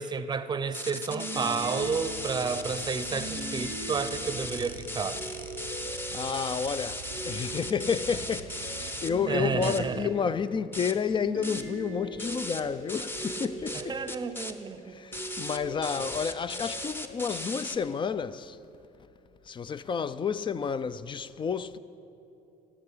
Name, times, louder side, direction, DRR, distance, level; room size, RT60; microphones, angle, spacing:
voice 1, 0.0-5.2 9.3-10.1 13.7-15.0 16.0-16.1, right 5 dB, 25° right, 0.7 m, -31 dB
sound 1, 0.7-9.1 9.6-9.8 10.3-10.4 10.7-11.0 11.4-11.7 12.2-12.6 12.9-13.8 14.1-14.5 15.1-17.8, left 1 dB, 15° left, 0.9 m, -37 dB
sound 2, 1.1-18.3, right 1 dB, 90° left, 3.8 m, -41 dB
sound 3, 1.8-10.1, right 14 dB, 70° right, 0.6 m, -47 dB
voice 2, 6.1-14.0 14.9-18.6 19.5-21.8, left 6 dB, 30° left, 0.4 m, -31 dB
16.0 x 7.7 x 8.4 m
cardioid pair, 110°, 17 cm